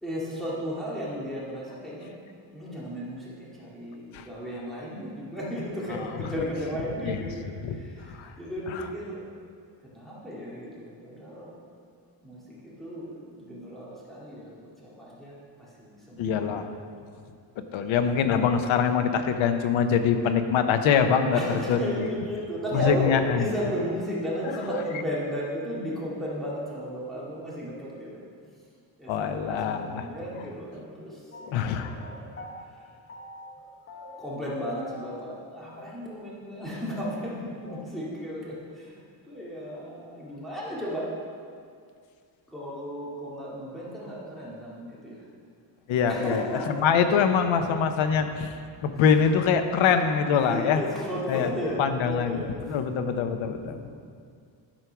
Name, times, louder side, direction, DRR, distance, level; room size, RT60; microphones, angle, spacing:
voice 1, 0.0-2.2 2.5-9.2 9.9-11.6 12.2-16.3 21.3-28.2 29.0-32.4 32.7-32.8 33.9-41.1 42.5-45.2 46.1-46.9 50.4-52.5 53.6-53.9, equal, ahead, -7 dB, 2.2 m, -34 dB
voice 2, 16.2-16.7 17.7-22.1 22.7-23.5 29.1-30.0 31.4-31.9 45.9-48.5 48.8-50.8 51.3-51.5 51.8-52.4 52.6-53.8, left 7 dB, 85° left, 8 dB, 0.9 m, -24 dB
sound 1, 31.3-32.7 33.1-33.6 33.9-34.4 34.6-35.5 35.8-35.9 36.2-36.3 36.5-36.6 36.9-37.9, left 1 dB, 30° left, 1.1 m, -44 dB
12.0 x 4.6 x 5.8 m, 2.2 s
cardioid pair, 150°, 46 cm